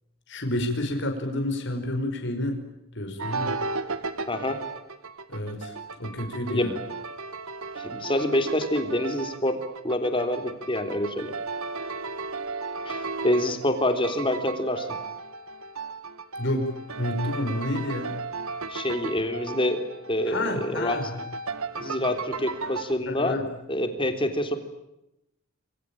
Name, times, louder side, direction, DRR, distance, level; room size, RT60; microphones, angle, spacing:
voice 1, 0.3-2.6 2.9-3.6 5.3-5.7 6.0-6.7 16.4-18.2 20.3-21.2 23.1-23.5, left 1 dB, 55° left, 4 dB, 5.3 m, -29 dB
sound 1, 3.2-22.9, right 4 dB, 80° right, 1.8 m, -35 dB
voice 2, 4.3-4.6 6.5-6.7 7.7-11.3 12.9-14.9 18.7-21.0 21.8-23.4 23.7-24.6, left 1 dB, 25° left, 7 dB, 3.4 m, -27 dB
27.5 x 24.0 x 8.9 m, 0.87 s
head